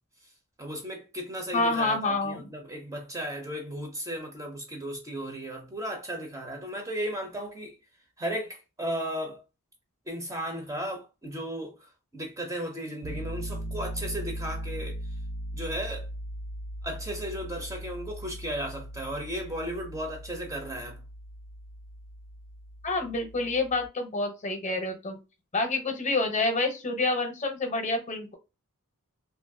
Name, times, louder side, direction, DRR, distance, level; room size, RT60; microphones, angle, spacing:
voice 1, 0.6-7.8 8.2-9.4 10.1-15.0 15.5-16.1 16.8-21.0, equal, 15° right, 0.4 m, -35 dB
voice 2, 1.5-2.4 22.8-25.2 25.5-28.3, left 2 dB, 35° left, 0.6 m, -28 dB
Piano, 13.0-23.9, right 1 dB, 75° right, 0.5 m, -39 dB
2.6 x 2.3 x 2.5 m
head